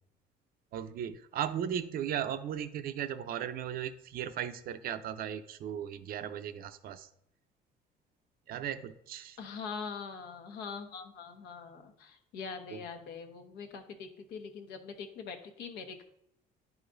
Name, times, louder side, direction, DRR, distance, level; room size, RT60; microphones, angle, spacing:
voice 1, 0.7-7.1 8.5-9.4 12.7-12.8, right 9 dB, 60° right, 10 dB, 0.6 m, -36 dB
voice 2, 9.4-16.0, left 5 dB, 80° left, 5 dB, 1.1 m, -43 dB
10.5 x 5.0 x 2.6 m, 0.75 s
cardioid pair, 110°, 17 cm